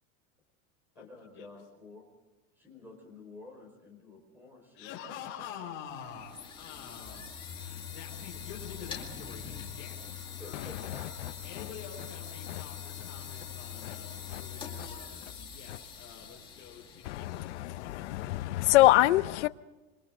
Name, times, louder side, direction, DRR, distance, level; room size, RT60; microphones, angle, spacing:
voice 1, 0.9-2.0 2.6-4.9 10.4-11.3, left 2 dB, 5° right, 4.7 m, -50 dB
voice 2, 4.7-10.7 11.4-17.5 17.8-18.6, left 8 dB, 30° left, 4.9 m, -47 dB
sound 1, 5.9-18.7, left 7 dB, 15° left, 2.1 m, -43 dB
voice 3, 17.1-19.5, left 17 dB, 60° left, 0.8 m, -25 dB
27.5 x 24.5 x 3.8 m
supercardioid pair, 180°, 39 cm